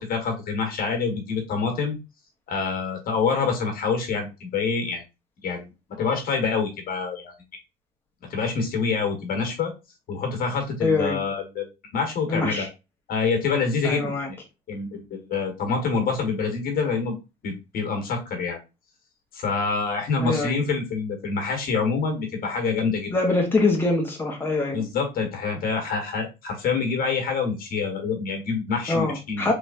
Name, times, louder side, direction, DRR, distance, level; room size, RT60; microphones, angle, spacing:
voice 1, 0.1-2.0 2.5-5.0 5.4-5.7 6.0-7.3 8.2-9.7 10.1-11.7 11.9-12.7 13.1-14.4 14.7-17.2 17.4-18.6 19.3-23.1 24.7-29.4, left 5 dB, 60° left, 3 dB, 1.3 m, -26 dB
voice 2, 10.8-11.2 12.3-12.7 13.8-14.3 20.2-20.6 23.1-24.8 28.9-29.5, left 3 dB, 15° left, -1 dB, 1.0 m, -24 dB
3.3 x 3.1 x 2.5 m, 0.26 s
cardioid pair, 110°, 17 cm